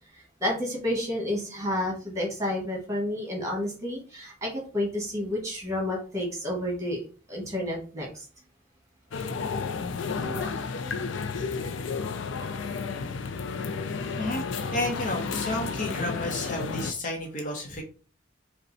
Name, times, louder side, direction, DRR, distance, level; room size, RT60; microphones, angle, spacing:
voice 1, 0.1-7.0 7.3-8.2 10.2-10.7, left 1 dB, 15° right, -1 dB, 1.7 m, -30 dB
sound 1, 9.1-16.9, left 5 dB, 80° left, 0.5 m, -32 dB
voice 2, 14.7-17.8, left 1 dB, 40° left, 3 dB, 0.9 m, -31 dB
5.3 x 2.2 x 4.1 m, 0.38 s
head